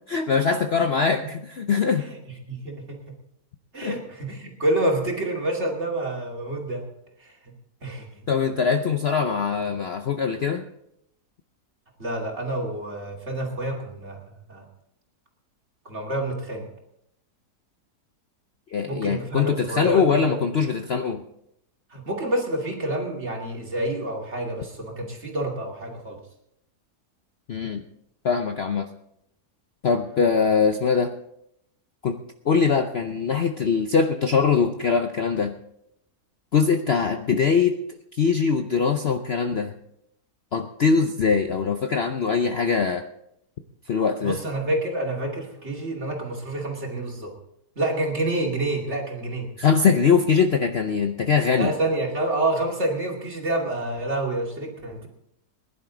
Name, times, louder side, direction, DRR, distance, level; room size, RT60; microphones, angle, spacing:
voice 1, 0.1-2.1 3.8-4.0 8.3-10.7 18.7-21.2 27.5-27.8 28.2-28.9 29.8-31.1 32.0-32.2 32.4-35.6 36.5-37.7 38.1-39.7 40.5-43.0 43.9-44.4 49.6-51.7, left 5 dB, 50° left, 6 dB, 0.8 m, -22 dB
voice 2, 2.5-3.0 3.7-6.8 7.2-7.5 7.8-8.3 12.0-14.6 15.8-16.6 18.9-20.4 21.9-26.2 44.2-47.3 47.8-49.5 51.6-55.1, right 1 dB, 45° right, -1 dB, 2.8 m, -28 dB
21.0 x 11.0 x 3.8 m, 0.77 s
omnidirectional pair, 1.7 m